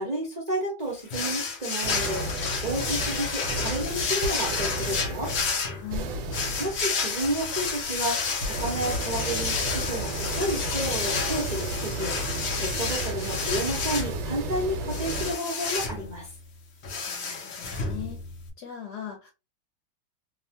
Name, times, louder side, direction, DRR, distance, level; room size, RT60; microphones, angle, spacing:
voice 1, 0.0-2.2 2.6-5.3 6.6-12.1 12.6-16.3, right 1 dB, 45° right, -4 dB, 0.5 m, -31 dB
sound 1, 1.1-18.5, left 5 dB, 85° left, 0.5 m, -31 dB
sound 2, 1.8-15.3, right 1 dB, 75° right, 1.2 m, -33 dB
voice 2, 5.7-6.1 17.1-18.2 18.6-19.3, left 10 dB, 70° left, 1 dB, 1.1 m, -39 dB
3.0 x 2.1 x 2.7 m, 0.27 s
omnidirectional pair, 2.0 m